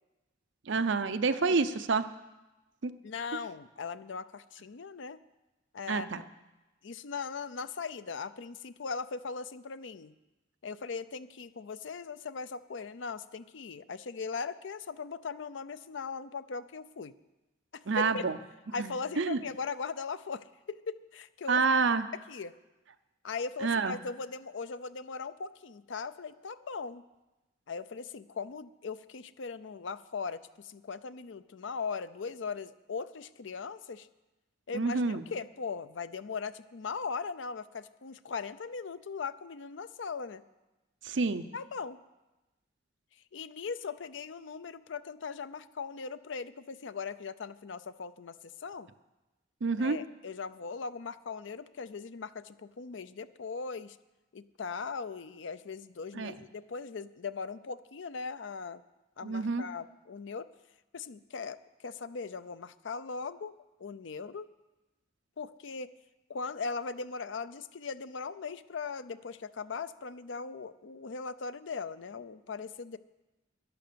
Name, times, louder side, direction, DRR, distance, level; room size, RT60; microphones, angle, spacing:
voice 1, 0.7-2.1 2.8-2.9 5.9-6.2 17.9-18.4 18.8-19.4 21.5-22.0 23.6-23.9 34.7-35.2 41.0-41.4 49.6-50.0 56.1-56.3 59.2-59.7, right 4 dB, 70° right, 11 dB, 0.6 m, -28 dB
voice 2, 3.0-5.2 5.7-6.3 6.8-10.1 10.6-17.1 17.7-18.2 18.7-21.6 22.3-22.5 23.2-27.0 27.7-34.1 34.7-40.4 41.5-42.0 43.3-48.3 48.6-48.9 49.8-54.0 54.3-58.8 59.2-60.5 60.9-61.6 61.8-64.5 65.4-65.9 66.3-73.0, left 5 dB, 70° left, 14 dB, 0.5 m, -39 dB
12.0 x 10.5 x 6.9 m, 1.1 s
head